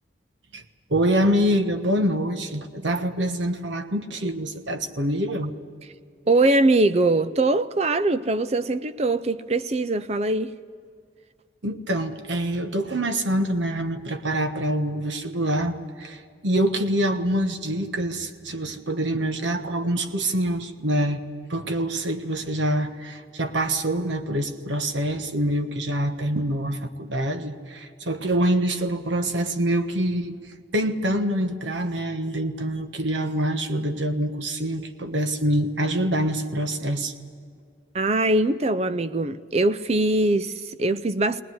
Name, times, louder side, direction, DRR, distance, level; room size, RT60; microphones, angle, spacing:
voice 1, 0.9-5.5 11.6-21.2 21.5-30.4 30.7-37.1, right 1 dB, 85° right, 1.4 m, -25 dB
voice 2, 6.3-10.5 37.9-41.4, right 2 dB, 35° right, 0.5 m, -22 dB
20.5 x 19.0 x 9.5 m
head